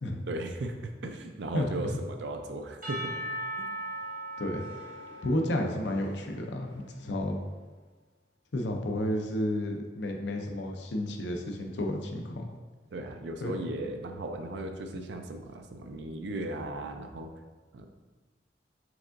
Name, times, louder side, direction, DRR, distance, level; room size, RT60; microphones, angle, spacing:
voice 1, 0.3-3.0 3.6-3.7 12.9-17.3 17.7-17.9, right 2 dB, 70° right, 5 dB, 0.4 m, -37 dB
voice 2, 1.5-2.0 4.4-4.6 5.2-7.4 8.5-12.5 13.4-13.5, left 1 dB, 70° left, 3 dB, 0.5 m, -31 dB
Percussion / Church bell, 2.8-7.0, right 1 dB, 50° right, 0.9 m, -39 dB
4.7 x 3.5 x 2.5 m, 1.3 s
head